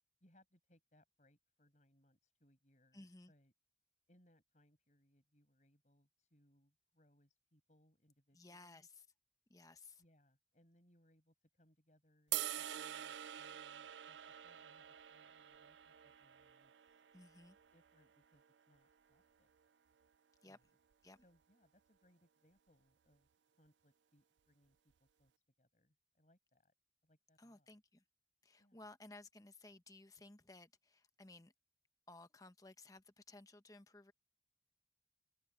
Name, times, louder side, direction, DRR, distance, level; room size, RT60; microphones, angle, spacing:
voice 1, 0.2-3.5 4.1-8.9 10.0-17.0 17.7-19.5 20.4-20.7 21.1-25.3 25.6-26.7 27.0-27.7 28.6-28.9, left 1 dB, 40° left, 7.2 m, -73 dB
voice 2, 2.9-3.3 8.3-9.1 9.5-10.0 17.1-17.6 20.4-20.6 21.0-21.2 27.4-28.0 28.4-31.5 32.1-34.1, left 2 dB, 20° left, 1.0 m, -58 dB
sound 1, 12.3-18.5, right 13 dB, 80° right, 0.4 m, -46 dB
head